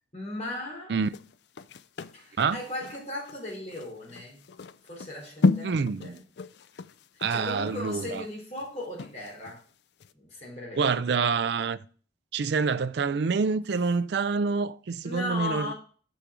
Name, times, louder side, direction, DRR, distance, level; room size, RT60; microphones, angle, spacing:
voice 1, 0.1-0.9 2.1-4.4 4.9-6.2 7.1-9.6 10.1-10.9 15.0-15.7, left 2 dB, 35° left, 3.7 m, -37 dB
sound 1, 1.1-9.6 10.0-10.1, left 3 dB, 60° left, 0.4 m, -32 dB
voice 2, 5.6-6.2 7.2-8.2 10.8-11.8 12.3-15.7, right 5 dB, 60° right, 0.4 m, -27 dB
6.8 x 6.3 x 4.8 m
head